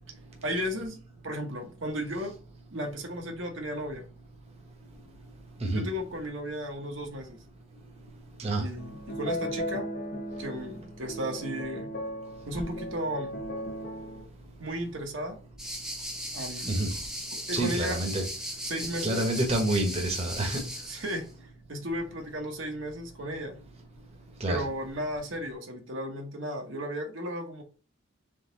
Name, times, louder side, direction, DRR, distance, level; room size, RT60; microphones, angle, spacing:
voice 1, 0.4-1.0 1.2-2.3 2.7-4.0 5.7-7.4 8.6-9.9 10.4-11.9 12.5-13.4 14.6-15.4 16.3-16.8 17.5-18.1 18.7-19.3 20.9-21.3 21.7-23.6 24.5-27.6, equal, 70° right, 1.0 m, -34 dB
sound 1, 8.8-14.3, equal, 45° left, 0.7 m, -37 dB
sound 2, 15.6-21.2, equal, 5° right, 0.7 m, -37 dB
voice 2, 17.5-18.2 19.0-20.6 24.4-24.6, right 1 dB, 30° right, 1.0 m, -27 dB
3.8 x 3.4 x 3.9 m
head